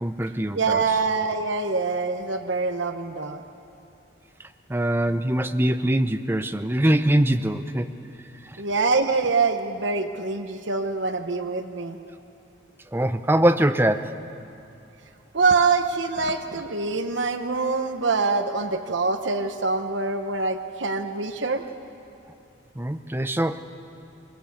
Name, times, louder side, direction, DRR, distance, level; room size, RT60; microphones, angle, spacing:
voice 1, 0.0-0.8 4.7-7.9 8.4-8.6 12.9-14.2 22.8-23.6, right 1 dB, 10° right, 9 dB, 0.6 m, -23 dB
voice 2, 0.5-3.4 8.6-12.0 15.3-21.6, right 4 dB, 70° right, 7 dB, 1.1 m, -24 dB
22.0 x 21.0 x 8.5 m, 2.7 s
head